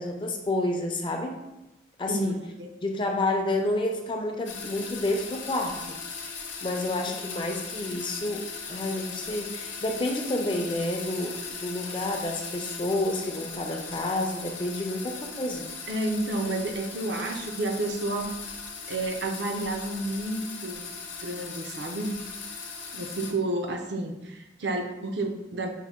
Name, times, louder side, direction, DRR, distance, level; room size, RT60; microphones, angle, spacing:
voice 1, 0.0-1.4 2.0-2.4 2.8-6.0 6.6-15.7 17.3-17.4, left 2 dB, 25° left, 2 dB, 0.4 m, -29 dB
sound 1, 4.4-23.3, left 5 dB, 70° left, 0.8 m, -39 dB
voice 2, 15.9-18.4 18.9-20.9 21.2-22.2 22.9-25.7, right 2 dB, 60° right, 3 dB, 0.5 m, -30 dB
5.4 x 2.1 x 3.5 m, 0.97 s
head